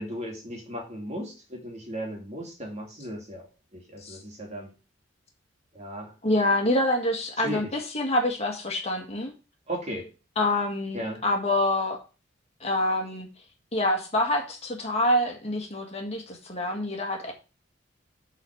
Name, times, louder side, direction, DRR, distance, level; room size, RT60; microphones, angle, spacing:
voice 1, 0.0-3.5 3.7-4.7 5.7-6.1 7.4-7.7 9.7-10.1 10.9-11.2, equal, 35° right, 1 dB, 2.6 m, -36 dB
voice 2, 6.2-9.3 10.4-12.0 12.6-13.3 13.7-17.3, left 1 dB, 30° left, 2 dB, 1.8 m, -26 dB
8.0 x 4.2 x 6.3 m, 0.32 s
head